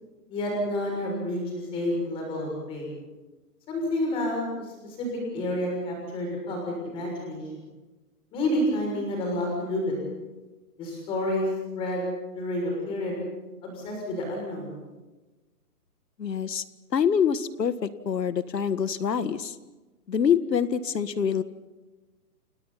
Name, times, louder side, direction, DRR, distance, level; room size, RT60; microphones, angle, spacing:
voice 1, 0.3-2.9 3.7-5.1 5.3-7.5 8.3-10.0 10.8-11.5 11.7-12.0 12.3-13.2 13.6-14.8, left 1 dB, 10° left, 0 dB, 6.5 m, -29 dB
voice 2, 16.2-16.6 16.9-19.6 20.1-21.4, left 7 dB, 85° left, 12 dB, 1.8 m, -25 dB
30.0 x 30.0 x 4.2 m, 1.2 s
hypercardioid pair, 180°, 48 cm